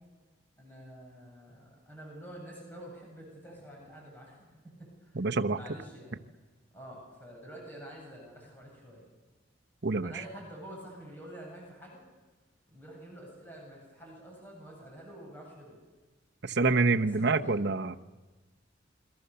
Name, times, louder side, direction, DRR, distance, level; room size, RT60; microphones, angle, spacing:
voice 1, 0.6-5.2 5.5-6.2 6.7-9.0 10.0-12.0 12.7-15.8 17.0-17.5, right 1 dB, 10° left, -3 dB, 8.0 m, -48 dB
voice 2, 5.1-5.6 9.8-10.1 16.4-18.1, right 3 dB, 60° right, 7 dB, 1.0 m, -27 dB
28.5 x 23.0 x 7.0 m, 1.2 s
head